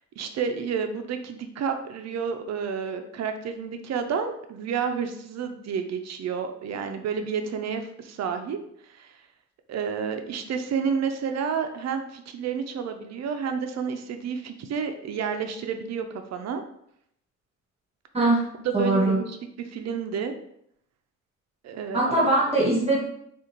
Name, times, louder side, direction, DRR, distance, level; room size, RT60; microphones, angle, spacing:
voice 1, 0.2-8.6 8.9-9.1 9.7-16.6 18.6-20.3 21.6-22.1, right 6 dB, 60° right, 6 dB, 0.5 m, -30 dB
voice 2, 18.7-19.2 21.9-23.0, right 2 dB, 20° right, -5 dB, 1.4 m, -21 dB
4.8 x 2.5 x 2.9 m, 0.71 s
cardioid pair, 90°, 30 cm